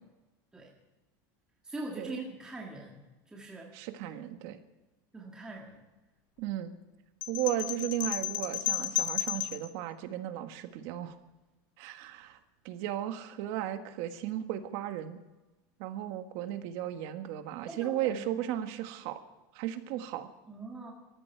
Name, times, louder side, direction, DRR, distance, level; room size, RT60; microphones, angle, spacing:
voice 1, 1.6-3.0 3.3-3.8 5.1-5.8 17.7-18.2 20.5-20.9, right 2 dB, 5° right, -1 dB, 1.8 m, -42 dB
voice 2, 3.7-4.6 6.4-6.8 7.3-11.2 11.8-12.4 12.6-15.2 15.8-19.2 19.5-20.3, right 12 dB, 55° right, 8 dB, 1.5 m, -35 dB
sound 1, 7.2-9.7, left 13 dB, 85° left, 1.4 m, -33 dB
19.5 x 14.0 x 4.6 m, 1.1 s
supercardioid pair, 165°, 11 cm